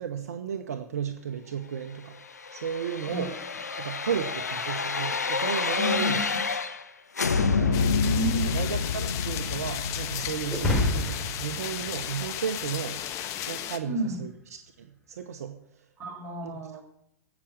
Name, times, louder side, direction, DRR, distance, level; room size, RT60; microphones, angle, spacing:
voice 1, 0.0-2.2 2.5-3.3 3.8-6.2 8.4-13.0 13.5-15.6 16.4-16.5, right 8 dB, 70° right, 7 dB, 1.2 m, -34 dB
sound 1, 2.1-6.9 7.1-12.0 12.4-12.5, left 4 dB, 85° left, 1.2 m, -29 dB
voice 2, 5.8-6.1 7.3-8.5 13.8-14.2 16.0-16.8, left 1 dB, 25° right, -1 dB, 5.5 m, -30 dB
sound 2, 7.7-13.8, left 11 dB, 35° left, 1.4 m, -35 dB
sound 3, 10.5-13.0, left 2 dB, 5° left, 3.8 m, -29 dB
16.0 x 6.3 x 8.7 m, 0.73 s
hypercardioid pair, 105°, 9 cm